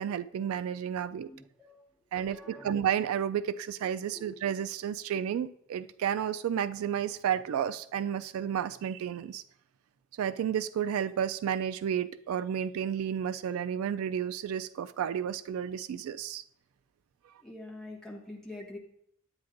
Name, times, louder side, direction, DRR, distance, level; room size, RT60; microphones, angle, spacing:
voice 1, 0.0-1.3 2.1-9.4 10.2-16.4, right 9 dB, 85° right, 15 dB, 0.3 m, -32 dB
voice 2, 1.3-1.8 2.2-2.7 4.1-4.4 17.4-18.8, left 2 dB, ahead, -3 dB, 1.4 m, -45 dB
9.7 x 8.5 x 2.5 m, 0.70 s
head